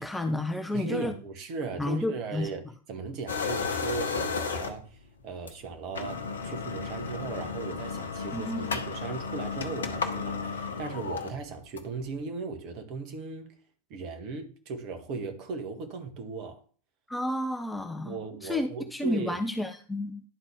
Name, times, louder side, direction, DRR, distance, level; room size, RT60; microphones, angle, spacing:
voice 1, 0.0-1.2 1.8-2.5 8.3-8.7 17.1-20.2, left 1 dB, 5° left, 0.6 m, -31 dB
voice 2, 0.7-5.0 5.2-13.6 13.9-16.6 18.0-19.4, right 4 dB, 40° right, 1.4 m, -37 dB
sound 1, 3.3-5.0 5.5-5.6 5.9-12.0, left 5 dB, 70° left, 0.7 m, -33 dB
11.0 x 4.0 x 3.5 m
figure-of-eight pair, 90°, 0 cm